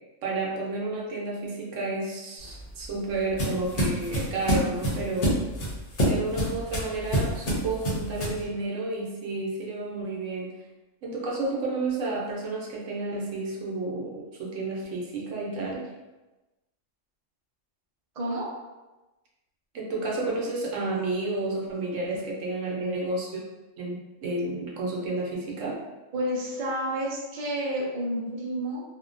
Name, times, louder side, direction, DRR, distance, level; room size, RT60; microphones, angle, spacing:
voice 1, 0.2-5.4 6.0-10.5 11.0-15.9 19.7-23.3 23.8-25.7, right 2 dB, 75° right, -3 dB, 1.0 m, -31 dB
sound 1, 2.4-8.5, equal, 50° left, 0.8 m, -27 dB
voice 2, 18.2-18.5 22.7-23.1 26.1-28.8, equal, 50° right, -3 dB, 0.4 m, -30 dB
2.6 x 2.1 x 2.5 m, 1.1 s
omnidirectional pair, 1.3 m